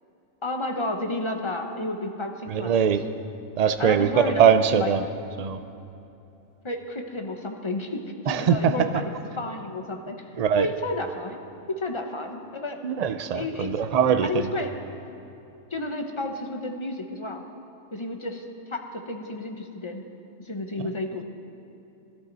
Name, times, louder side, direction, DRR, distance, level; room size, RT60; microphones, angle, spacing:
voice 1, 0.4-2.9 3.8-4.9 6.6-11.4 11.8-12.8 13.3-13.7 14.2-14.7 15.7-17.4 17.9-20.0 20.4-21.2, left 2 dB, 25° left, 3 dB, 1.0 m, -32 dB
voice 2, 2.5-3.0 3.6-5.0 5.4-5.6 8.3-8.7 10.4-10.7 12.8-14.5, right 7 dB, 50° right, 10 dB, 0.4 m, -21 dB
20.0 x 13.0 x 4.1 m, 2.8 s
omnidirectional pair, 1.4 m